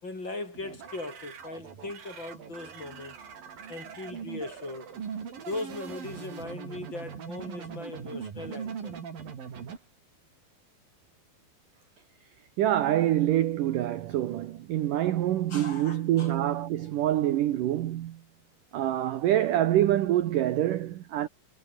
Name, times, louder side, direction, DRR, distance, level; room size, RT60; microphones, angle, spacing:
voice 1, 0.0-3.2 3.7-5.0 5.4-8.9 15.5-16.3, left 2 dB, 25° left, 5.1 m, -39 dB
sound 1, 0.5-9.8, right 7 dB, 50° right, 5.0 m, -41 dB
voice 2, 12.6-18.2 18.7-21.3, right 13 dB, 70° right, 2.1 m, -26 dB
omnidirectional pair, 5.3 m